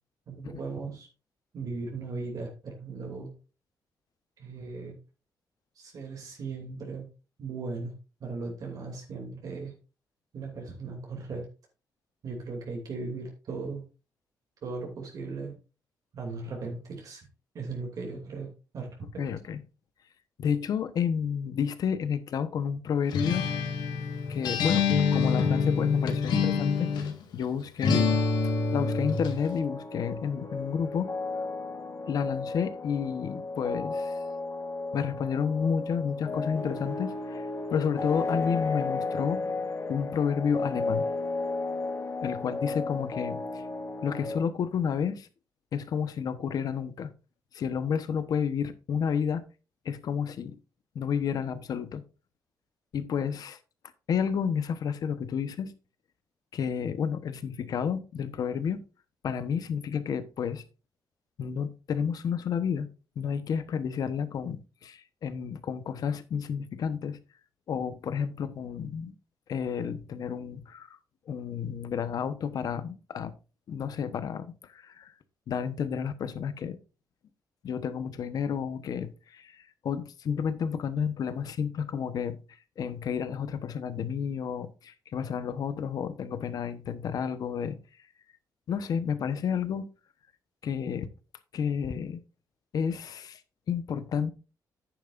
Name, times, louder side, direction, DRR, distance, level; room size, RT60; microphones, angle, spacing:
voice 1, 0.3-1.1 1.5-3.3 4.4-5.0 5.8-7.1 7.4-7.9 8.2-9.8 10.3-11.5 12.2-13.9 14.6-15.6 16.1-17.3 17.5-19.2, right 4 dB, 55° right, 2.7 m, -37 dB
voice 2, 19.2-19.6 20.4-23.4 24.3-26.9 27.3-28.2 28.7-31.1 32.1-34.2 34.9-39.4 39.9-41.1 42.2-43.6 44.0-45.3 45.7-47.1 47.5-49.4 49.8-50.6 50.9-52.0 52.9-53.6 54.1-55.7 56.5-58.8 59.2-60.6 61.4-62.9 63.2-67.2 67.7-69.1 69.5-71.0 71.3-73.3 73.7-75.1 75.5-76.8 77.6-82.4 82.8-87.8 88.7-89.8 90.6-91.1 91.5-92.2 92.7-93.4 93.7-94.3, left 7 dB, 60° left, 1.1 m, -31 dB
Acoustic guitar, 23.1-27.2 27.8-29.4, left 5 dB, 90° left, 1.9 m, -26 dB
sound 1, 27.8-44.4, left 3 dB, 40° left, 2.2 m, -34 dB
10.5 x 9.2 x 2.6 m
cardioid pair, 135°, 7 cm